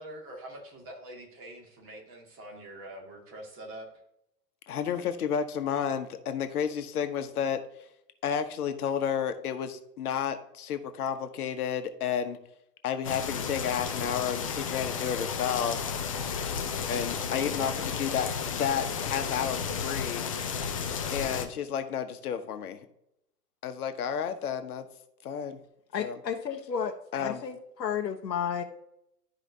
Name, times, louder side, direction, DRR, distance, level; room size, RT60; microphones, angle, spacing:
voice 1, 0.0-3.9, right 1 dB, 25° right, 0 dB, 2.2 m, -44 dB
voice 2, 4.7-7.6 8.2-12.4 12.8-15.8 16.9-20.2 21.1-22.8 23.6-24.9 25.2-25.6 26.0-26.2 27.1-27.4, left 8 dB, 65° left, 8 dB, 1.1 m, -31 dB
sound 1, 13.0-21.5, left 6 dB, 25° left, 0.3 m, -33 dB
voice 3, 25.9-28.6, left 7 dB, 85° left, 5 dB, 0.9 m, -32 dB
12.0 x 4.9 x 2.7 m, 0.80 s
hypercardioid pair, 115°, 49 cm